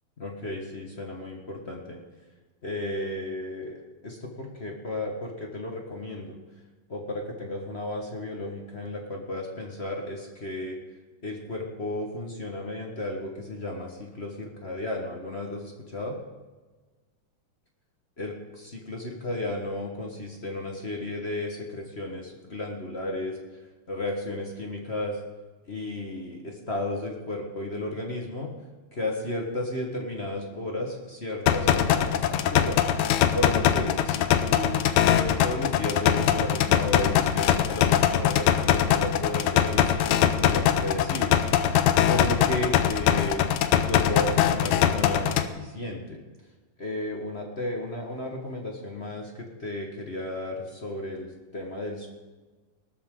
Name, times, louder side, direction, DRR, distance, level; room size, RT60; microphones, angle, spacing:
voice 1, 0.2-2.0 2.6-6.4 6.9-10.8 11.2-16.2 18.2-23.4 23.9-25.2 25.7-28.5 28.9-32.9 33.3-41.8 42.1-43.4 43.7-46.2 46.8-52.1, left 1 dB, 35° left, 1 dB, 1.1 m, -33 dB
sound 1, 31.5-45.5, left 10 dB, 85° left, 2.1 m, -22 dB
19.0 x 12.5 x 3.8 m, 1.3 s
omnidirectional pair, 3.3 m